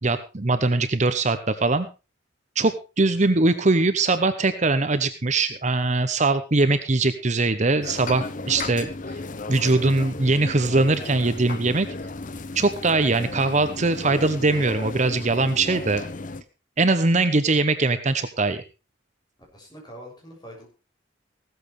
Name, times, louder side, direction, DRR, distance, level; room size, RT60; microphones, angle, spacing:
voice 1, 0.0-1.9 2.6-9.2 9.5-11.9 12.5-16.0 16.8-18.6, right 3 dB, 40° right, 10 dB, 0.8 m, -21 dB
sound 1, 7.8-16.4, left 3 dB, 40° left, 0.7 m, -35 dB
voice 2, 19.5-20.7, equal, 20° left, -1 dB, 6.8 m, -43 dB
16.0 x 13.5 x 3.3 m, 0.31 s
head